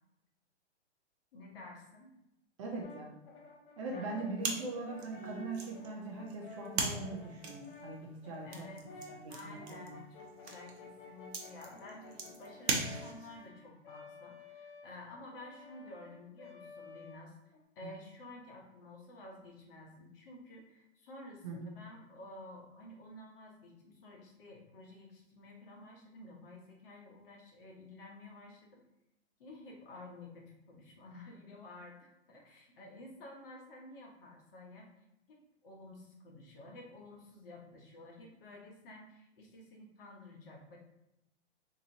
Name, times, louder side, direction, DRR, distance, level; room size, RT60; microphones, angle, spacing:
voice 1, 1.3-2.1 3.8-4.1 8.4-17.3 17.7-28.8 29.4-31.9 32.3-34.9 35.3-40.8, left 2 dB, 55° left, 0 dB, 1.1 m, -52 dB
voice 2, 2.6-3.2 3.8-10.0 21.4-21.7, right 3 dB, 30° right, -1 dB, 0.4 m, -41 dB
Brass instrument, 2.8-17.6, left 3 dB, 25° left, 0.5 m, -53 dB
sound 1, 4.4-13.4, right 4 dB, 65° right, 0.8 m, -40 dB
3.8 x 2.9 x 2.7 m, 0.89 s
hypercardioid pair, 135°, 35 cm